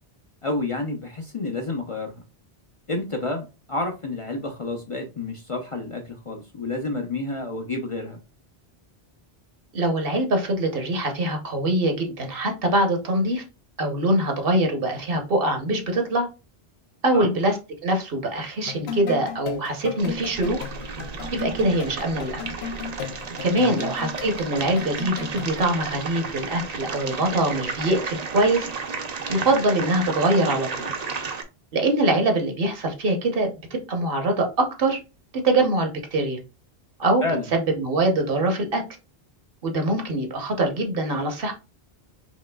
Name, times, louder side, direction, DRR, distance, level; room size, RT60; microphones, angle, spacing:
voice 1, 0.4-2.2 2.9-8.2 17.1-17.4 23.5-23.8 37.2-37.5, left 2 dB, 40° left, 3 dB, 0.6 m, -29 dB
voice 2, 9.7-13.4 13.8-16.3 17.0-17.6 17.8-20.6 21.3-22.4 23.4-28.7 29.3-30.9 31.7-35.0 35.4-36.4 37.0-37.2 37.5-38.8 39.6-41.5, right 1 dB, 65° right, 4 dB, 1.1 m, -23 dB
sound 1, 18.6-25.7, left 6 dB, 85° left, 0.9 m, -35 dB
sound 2, 20.0-31.4, right 5 dB, 45° right, 0.6 m, -33 dB
5.0 x 3.0 x 2.2 m, 0.29 s
omnidirectional pair, 1.0 m